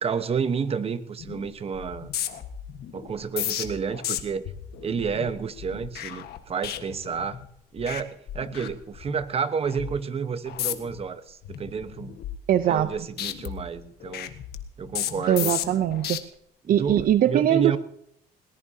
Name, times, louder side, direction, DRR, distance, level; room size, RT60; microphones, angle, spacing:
voice 1, 0.0-2.1 2.9-4.4 4.8-7.4 7.7-12.2 12.7-14.3 14.8-15.5 16.6-17.8, right 6 dB, 35° right, 12 dB, 1.2 m, -30 dB
sound 1, 1.2-1.5 1.7-7.5 7.8-8.0 8.3-9.2 9.6-9.9 10.5-11.0 11.4-12.9 13.2-16.2 16.7-17.1, left 11 dB, 70° left, 1.5 m, -34 dB
voice 2, 12.5-12.9 15.3-16.2 16.7-17.8, right 11 dB, 60° right, 13 dB, 0.7 m, -21 dB
21.0 x 19.0 x 2.8 m, 0.73 s
cardioid pair, 110°, 17 cm